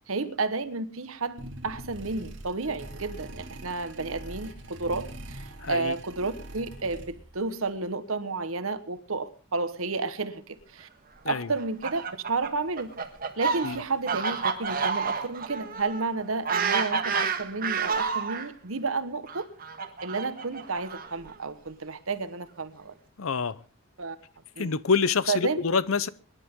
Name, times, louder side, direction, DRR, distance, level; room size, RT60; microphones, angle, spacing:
voice 1, 0.1-10.9 11.3-12.0 12.3-12.9 13.3-19.5 20.0-22.9 24.0-24.2 24.6-24.7 25.3-25.6, right 3 dB, 80° right, 1.3 m, -31 dB
sound 1, 1.4-7.4, right 1 dB, 60° right, 2.5 m, -43 dB
voice 2, 5.6-5.9 11.2-11.5 13.6-13.8 23.2-23.6 24.6-26.1, left 5 dB, 80° left, 0.7 m, -26 dB
Fowl, 11.5-18.5 19.3-21.3, right 5 dB, 45° right, 1.6 m, -29 dB
23.5 x 11.0 x 3.7 m
head